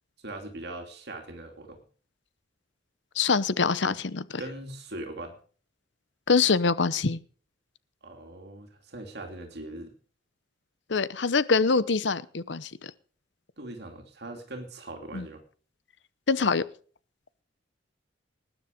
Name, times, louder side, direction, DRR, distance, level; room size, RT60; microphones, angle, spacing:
voice 1, 0.2-1.8 4.4-5.4 8.0-9.9 13.6-15.4, right 1 dB, 60° right, 2.8 m, -40 dB
voice 2, 3.2-4.2 6.3-7.2 10.9-12.7 15.1-15.2 16.3-16.6, left 4 dB, 65° left, 0.8 m, -24 dB
19.5 x 10.0 x 5.2 m
head